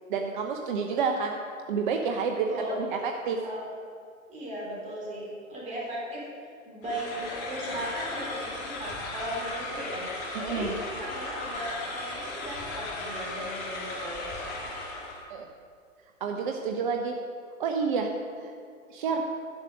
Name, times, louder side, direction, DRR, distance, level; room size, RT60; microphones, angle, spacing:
voice 1, 0.1-1.4 1.7-3.4 10.3-10.7 15.3-15.5 16.2-17.2 17.6-18.1 18.4-18.5 18.9-19.3, right 5 dB, 35° right, 3 dB, 0.7 m, -29 dB
voice 2, 2.5-2.8 3.4-3.6 4.3-10.1 10.4-14.2, right 1 dB, 15° right, -4 dB, 3.1 m, -37 dB
sound 1, 6.8-15.3, left 2 dB, 30° left, 1.8 m, -36 dB
11.0 x 6.6 x 6.2 m, 2.2 s
figure-of-eight pair, 115°, 41 cm